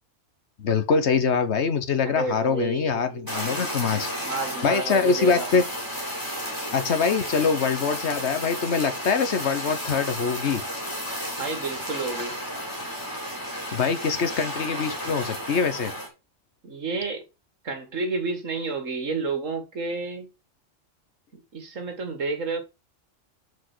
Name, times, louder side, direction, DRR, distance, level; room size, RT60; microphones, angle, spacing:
voice 1, 0.6-4.1 4.6-5.6 6.7-10.6 13.7-15.9, left 5 dB, 60° left, 1.2 m, -24 dB
voice 2, 2.1-3.2 3.9-5.5 11.4-12.4 16.6-17.2 17.6-20.3 21.5-22.6, right 3 dB, 80° right, 2.2 m, -30 dB
Fire, 3.3-16.1, equal, 15° left, 3.4 m, -33 dB
6.4 x 5.1 x 6.1 m
omnidirectional pair, 1.3 m